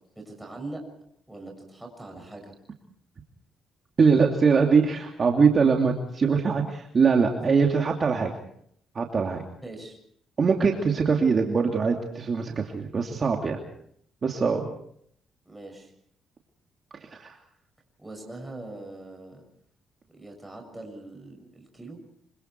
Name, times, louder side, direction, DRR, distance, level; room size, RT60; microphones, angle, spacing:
voice 1, 0.1-0.8 1.3-2.5 9.6-10.0 15.4-15.9 18.0-19.4 20.1-22.0, right 2 dB, 5° right, 1 dB, 6.8 m, -41 dB
voice 2, 4.0-8.3 8.9-9.4 10.4-13.6 14.2-14.7 17.1-17.4, right 5 dB, 40° right, 1 dB, 2.8 m, -22 dB
26.0 x 25.5 x 4.7 m, 0.68 s
cardioid pair, 90°, 0 cm